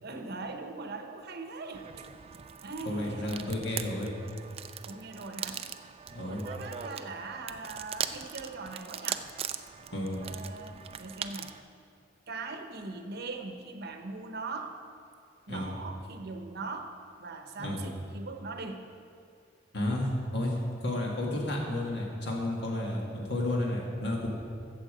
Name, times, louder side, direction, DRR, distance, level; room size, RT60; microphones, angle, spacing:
voice 1, 0.0-2.0 2.6-3.7 4.9-5.7 6.1-9.3 10.2-11.5 12.3-14.7 15.5-16.9 17.2-18.9, right 3 dB, 55° right, 5 dB, 0.9 m, -40 dB
sound 1, 1.7-11.6, right 8 dB, 30° right, 0.4 m, -40 dB
voice 2, 2.9-4.2 6.1-6.5 9.9-10.3 15.5-15.7 17.6-17.8 19.7-20.6 20.8-24.3, left 1 dB, 65° left, -1 dB, 2.1 m, -32 dB
14.0 x 7.3 x 5.0 m, 2.4 s
head